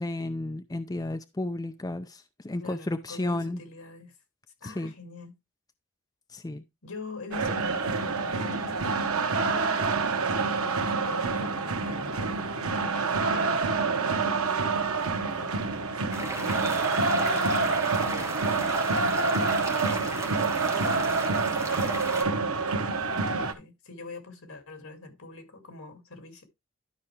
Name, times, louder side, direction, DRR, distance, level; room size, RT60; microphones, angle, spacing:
voice 1, 0.0-3.6 4.6-4.9 6.3-6.6, left 1 dB, 15° left, 0.4 m, -33 dB
voice 2, 2.6-4.2 4.6-5.3 6.8-12.5 12.8-14.9 15.2-18.5 18.9-19.7 20.2-22.0 22.7-22.9 23.1-26.4, left 3 dB, 80° left, 2.4 m, -44 dB
sound 1, 7.3-23.5, right 4 dB, 85° right, 1.3 m, -27 dB
sound 2, 16.1-22.2, right 3 dB, 15° right, 1.3 m, -35 dB
12.0 x 5.7 x 3.2 m
head